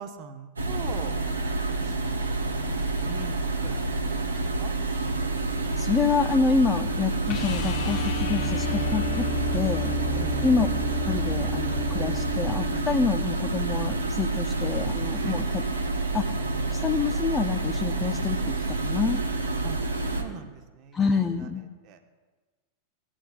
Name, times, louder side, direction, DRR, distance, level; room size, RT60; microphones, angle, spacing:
voice 1, 0.0-2.4 2.7-3.9 4.6-4.7 10.1-10.5 15.2-15.5 19.6-19.8 20.2-21.5 21.8-22.0, right 7 dB, 40° right, 7 dB, 1.0 m, -42 dB
sound 1, 0.6-20.2, right 3 dB, 80° right, 1.3 m, -28 dB
voice 2, 5.8-9.9 10.4-10.7 11.1-15.6 16.1-16.4 16.7-18.4 18.7-19.2 20.9-21.6, left 5 dB, 20° left, 5 dB, 0.6 m, -27 dB
sound 2, 7.3-13.3 15.7-15.8, left 2 dB, 40° left, 1.1 m, -32 dB
18.0 x 8.9 x 2.4 m, 1.3 s
figure-of-eight pair, 90°, 0 cm